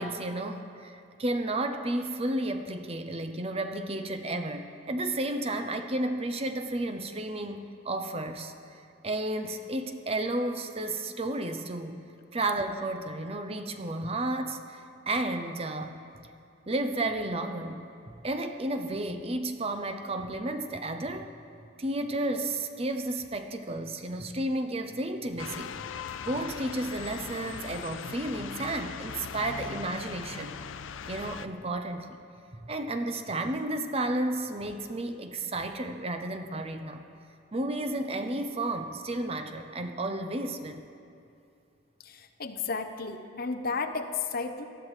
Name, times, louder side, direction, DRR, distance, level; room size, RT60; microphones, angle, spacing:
voice 1, 0.0-12.0 12.3-16.0 16.7-21.3 21.8-25.7 26.2-30.5 31.1-32.2 32.5-37.1 37.5-40.8, right 1 dB, 30° right, 7 dB, 0.7 m, -32 dB
sound 1, 25.4-31.5, left 6 dB, 75° left, 0.5 m, -40 dB
voice 2, 42.0-44.7, left 4 dB, 50° left, 8 dB, 0.8 m, -33 dB
18.5 x 12.0 x 4.9 m, 2.6 s
head